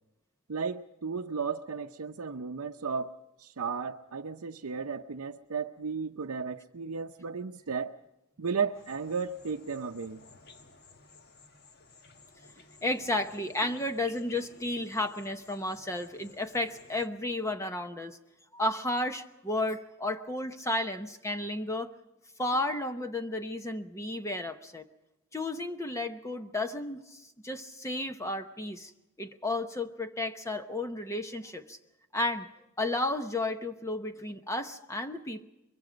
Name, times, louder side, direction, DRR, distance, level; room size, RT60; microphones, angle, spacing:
voice 1, 0.5-3.1 3.4-7.9 8.4-10.2, right 5 dB, 80° right, 3 dB, 0.6 m, -34 dB
sound 1, 8.7-17.1, left 3 dB, 45° left, 1.3 m, -55 dB
voice 2, 12.8-18.2 18.5-21.9 22.4-24.9 25.3-28.9 29.2-31.8 32.1-32.5 32.8-35.4, left 2 dB, 15° left, 7 dB, 0.9 m, -33 dB
23.0 x 23.0 x 5.1 m, 0.97 s
head